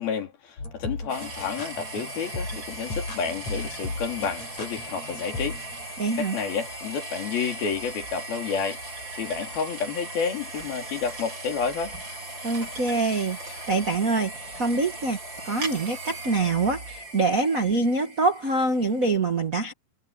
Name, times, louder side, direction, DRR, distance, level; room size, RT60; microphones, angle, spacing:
voice 1, 0.0-5.6 6.2-12.0, left 6 dB, 75° left, 5.2 m, -30 dB
sound 1, 0.6-5.9, left 2 dB, 45° left, 8.9 m, -36 dB
sound 2, 1.1-19.1, right 1 dB, 30° right, 4.7 m, -38 dB
voice 2, 6.0-6.4 12.4-15.2 15.4-19.7, right 3 dB, 70° right, 0.8 m, -25 dB
omnidirectional pair, 4.3 m